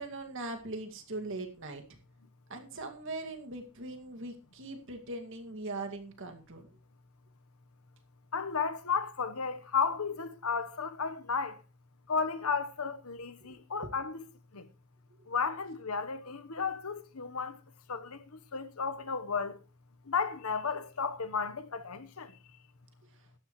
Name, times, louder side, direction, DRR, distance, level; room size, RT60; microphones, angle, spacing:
voice 1, 0.0-1.8 2.5-6.7 13.4-13.9 15.2-15.3, right 2 dB, 60° right, 2.2 m, -41 dB
voice 2, 8.3-11.6 12.1-14.2 14.5-14.6 15.3-17.6 17.9-19.6 20.1-22.3, left 5 dB, 75° left, 1.1 m, -33 dB
16.0 x 12.0 x 3.2 m
head